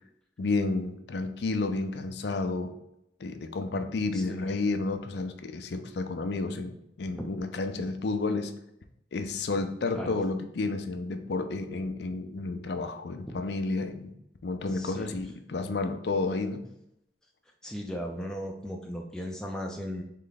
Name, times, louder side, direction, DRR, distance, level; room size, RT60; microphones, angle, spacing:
voice 1, 0.4-2.7 3.2-8.5 9.1-14.1 14.4-16.6, left 3 dB, 60° left, 7 dB, 0.5 m, -31 dB
voice 2, 14.7-15.2 17.6-20.0, equal, 5° left, 0 dB, 0.4 m, -37 dB
3.8 x 3.2 x 3.9 m, 0.81 s
head